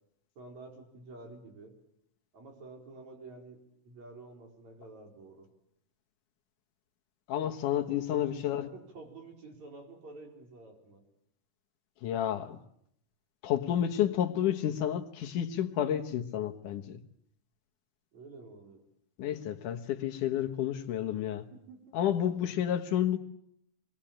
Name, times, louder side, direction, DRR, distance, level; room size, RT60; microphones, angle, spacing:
voice 1, 0.4-1.7 2.3-3.6 3.9-5.5 7.9-11.0 18.1-18.8 21.5-22.0, right 3 dB, 60° right, 5.9 m, -49 dB
voice 2, 7.3-8.7 12.0-12.6 13.4-17.0 19.2-21.4 21.9-23.2, left 10 dB, 75° left, 2.9 m, -30 dB
26.0 x 21.0 x 8.9 m
omnidirectional pair, 3.6 m